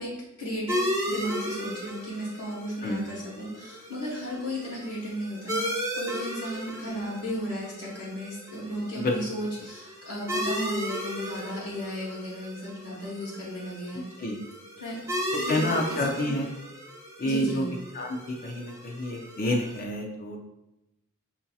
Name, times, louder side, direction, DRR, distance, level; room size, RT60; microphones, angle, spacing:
voice 1, 0.0-14.0 14.8-16.3 17.2-17.7, equal, 70° left, -9 dB, 1.5 m, -35 dB
sound 1, 0.7-19.8, equal, 15° right, 0.7 m, -35 dB
voice 2, 15.5-16.5 17.2-17.7 17.9-20.4, left 1 dB, 40° left, 1 dB, 0.5 m, -28 dB
7.1 x 2.7 x 2.3 m, 0.92 s
head